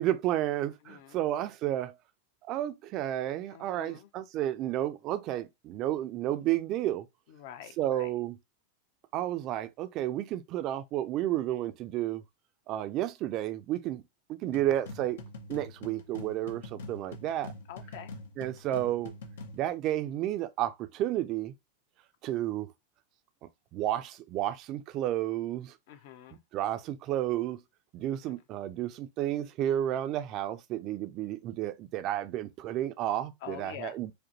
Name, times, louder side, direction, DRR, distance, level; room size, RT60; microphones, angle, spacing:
voice 1, 0.0-1.9 2.5-7.1 7.8-8.4 9.1-12.2 12.7-14.0 14.3-15.2 15.5-17.5 18.4-19.1 19.5-21.5 22.2-22.7 23.7-25.7 26.5-27.6 27.9-34.1, right 13 dB, 40° right, 0.4 m, -31 dB
voice 2, 0.8-1.3 3.5-4.1 7.3-8.1 17.7-18.1 25.9-26.4 28.2-28.3 33.4-34.0, left 10 dB, 60° left, 0.8 m, -46 dB
sound 1, 14.5-19.7, left 2 dB, 85° left, 1.0 m, -44 dB
5.0 x 2.2 x 3.0 m
supercardioid pair, 135°, 0 cm